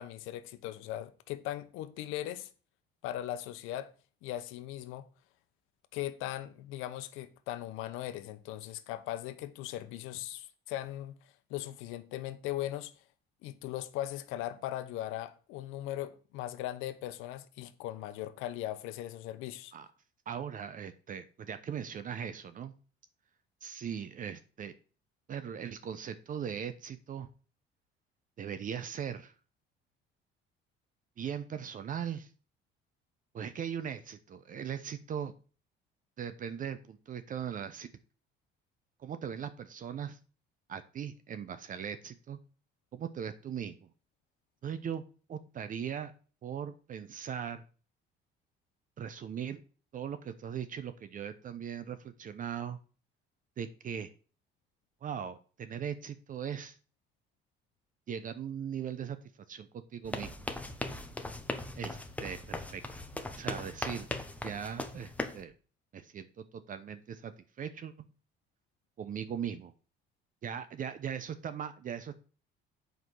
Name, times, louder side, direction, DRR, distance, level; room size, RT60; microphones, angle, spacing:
voice 1, 0.0-2.5 3.0-3.9 4.2-5.1 5.9-11.2 11.5-12.9 13.4-19.7, left 13 dB, 85° left, 0.9 m, -39 dB
voice 2, 20.3-22.7 23.6-24.7 25.3-27.3 28.4-29.3 31.2-32.3 33.3-35.3 36.2-37.9 39.0-40.2 40.7-42.4 42.9-43.9 44.6-45.0 45.3-46.1 46.4-47.6 49.0-49.6 49.9-52.8 53.6-54.1 55.0-56.8 58.1-59.2 59.5-60.5 61.8-62.8 63.4-64.1 64.4-65.5 65.9-67.3 67.6-67.9 69.0-69.7 70.4-72.1, right 8 dB, 40° right, 0.8 m, -39 dB
sound 1, 60.0-65.4, left 2 dB, 5° left, 1.0 m, -39 dB
7.7 x 5.1 x 6.2 m
cardioid pair, 120°, 20 cm